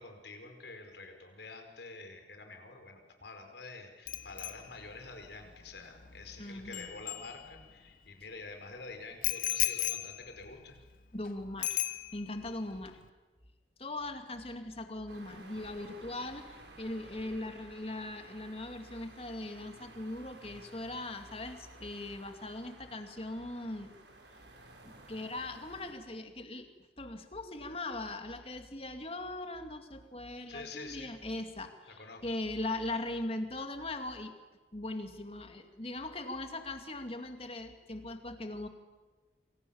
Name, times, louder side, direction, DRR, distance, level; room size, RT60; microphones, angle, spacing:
voice 1, 0.0-10.8 30.5-31.1 32.0-32.2, left 3 dB, 70° left, 5 dB, 5.1 m, -47 dB
Bicycle bell, 4.1-7.9 9.2-11.3 11.6-12.5 12.8-13.1, left 13 dB, 50° left, 1.2 m, -37 dB
voice 2, 6.4-6.9 11.1-11.8 12.1-13.0 13.8-23.9 24.8-26.7 27.0-34.3 34.7-38.7, left 2 dB, 30° left, 7 dB, 2.4 m, -40 dB
sound 1, 15.1-25.9, right 2 dB, 70° right, 6.2 m, -54 dB
27.5 x 26.0 x 7.2 m, 1.3 s
head